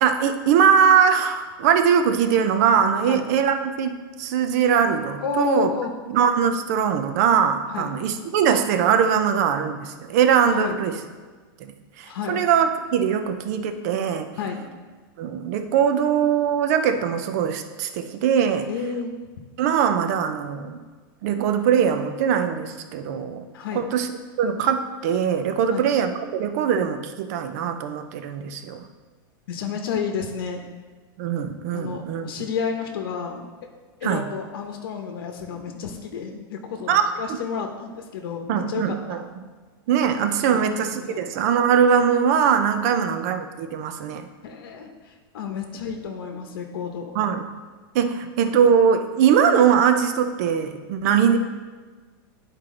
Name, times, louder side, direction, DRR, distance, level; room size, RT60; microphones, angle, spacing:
voice 1, 0.0-5.7 6.1-11.0 11.6-14.3 15.2-18.7 19.6-20.8 21.2-23.5 23.7-28.8 31.2-32.3 34.0-34.2 36.9-37.0 37.3-37.4 38.5-39.2 39.9-44.3 47.1-47.5 47.9-51.4, right 7 dB, 45° right, 8 dB, 0.6 m, -21 dB
voice 2, 5.2-5.9 7.7-7.9 10.5-10.8 12.0-12.4 14.4-14.6 18.6-19.1 23.5-23.9 25.7-25.8 29.5-30.6 31.7-33.4 34.0-39.2 40.5-41.2 42.9-43.0 44.4-47.1, left 6 dB, 75° left, 3 dB, 0.9 m, -31 dB
10.0 x 4.6 x 3.8 m, 1.4 s
supercardioid pair, 170°, 12 cm